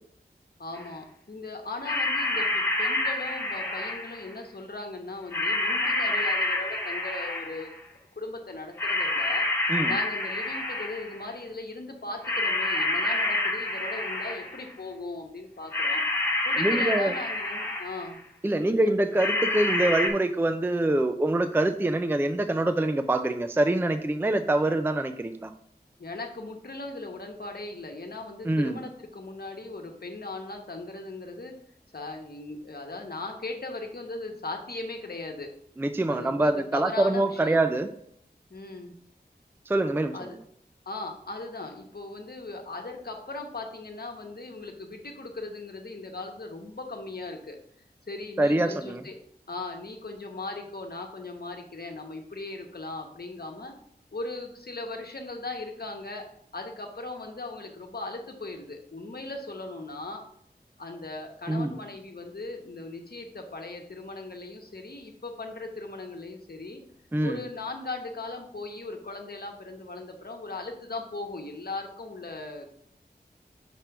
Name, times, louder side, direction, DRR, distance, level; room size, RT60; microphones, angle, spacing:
voice 1, 0.6-7.7 8.2-16.0 16.4-18.2 18.5-18.9 26.0-31.6 31.9-35.5 36.1-37.6 38.5-38.9 40.1-40.4 40.9-47.6 48.1-49.2 49.5-53.7 54.1-56.2 56.5-60.2 60.8-66.8 67.2-72.7, left 2 dB, 65° left, 3 dB, 1.1 m, -38 dB
sound 1, 0.8-0.9 1.8-4.3 5.3-7.8 8.8-11.2 12.2-14.7 15.7-18.1 19.2-20.1, left 2 dB, 15° left, 1.1 m, -28 dB
voice 2, 16.6-17.1 18.4-25.5 28.5-28.8 35.8-37.9 39.7-40.1 48.4-49.0 61.5-61.7 67.1-67.4, right 1 dB, 15° right, 8 dB, 0.4 m, -25 dB
5.9 x 3.3 x 5.9 m, 0.68 s
wide cardioid pair, 65°, 17 cm